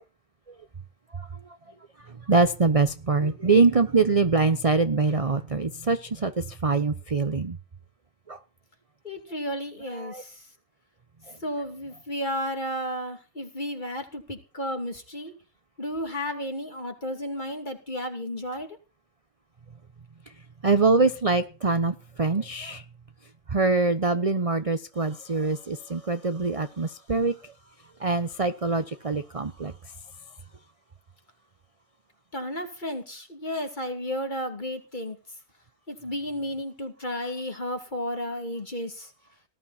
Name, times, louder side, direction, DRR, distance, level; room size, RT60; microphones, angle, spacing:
voice 1, 2.3-7.6 8.3-8.4 10.0-10.2 20.6-22.8 23.5-27.3 28.0-29.7, right 3 dB, 30° right, 11 dB, 0.8 m, -24 dB
voice 2, 9.0-10.4 11.4-15.3 15.8-18.7 32.3-35.2 35.9-39.1, equal, 30° left, 5 dB, 2.9 m, -33 dB
19.0 x 12.5 x 4.3 m, 0.33 s
omnidirectional pair, 1.6 m